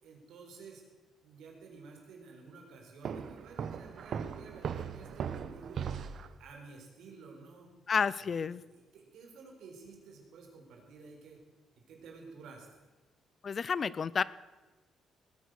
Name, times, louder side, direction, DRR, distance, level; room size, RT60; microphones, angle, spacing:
voice 1, 0.0-0.8 1.2-5.9 6.4-7.7 8.2-11.4 11.8-12.9, right 4 dB, 80° right, 1 dB, 4.2 m, -52 dB
Walk footsteps, 3.0-6.4, right 7 dB, 60° right, 0.9 m, -38 dB
voice 2, 7.9-8.6 13.4-14.2, left 6 dB, 45° left, 20 dB, 0.5 m, -30 dB
19.5 x 9.2 x 6.5 m, 1.2 s
cardioid pair, 90°, 0 cm